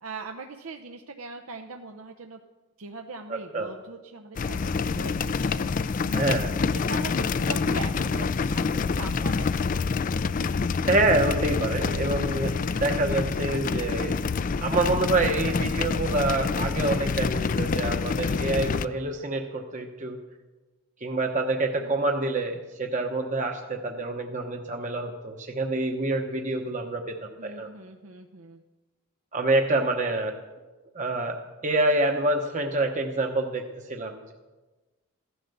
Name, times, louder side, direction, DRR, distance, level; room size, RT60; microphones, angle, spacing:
voice 1, 0.0-2.4 2.8-6.0 6.7-9.8 21.7-22.0 27.4-28.6, right 3 dB, 85° right, 4 dB, 0.8 m, -41 dB
voice 2, 3.3-3.7 6.1-6.5 10.9-14.2 14.6-20.2 21.0-27.7 29.3-30.4 30.9-31.4 31.6-34.3, right 2 dB, 35° right, 3 dB, 0.9 m, -27 dB
sound 1, 4.4-18.9, left 4 dB, 40° left, 0.4 m, -27 dB
15.0 x 11.5 x 6.8 m, 1.2 s
head